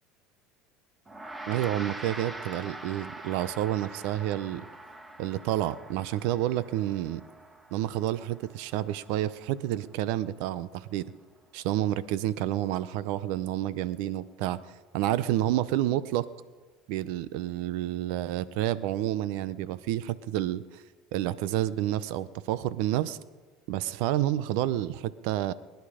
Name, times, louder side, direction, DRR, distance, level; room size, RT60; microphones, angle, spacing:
Gong, 1.1-10.7, right 1 dB, 15° right, 1.6 m, -44 dB
voice 1, 1.5-4.6 5.2-7.2 7.7-11.1 11.5-14.6 14.9-16.3 16.9-20.8 21.1-23.2 23.7-25.5, right 13 dB, 70° right, 17 dB, 0.6 m, -29 dB
25.0 x 10.5 x 5.0 m, 1.3 s
supercardioid pair, 105°, 0 cm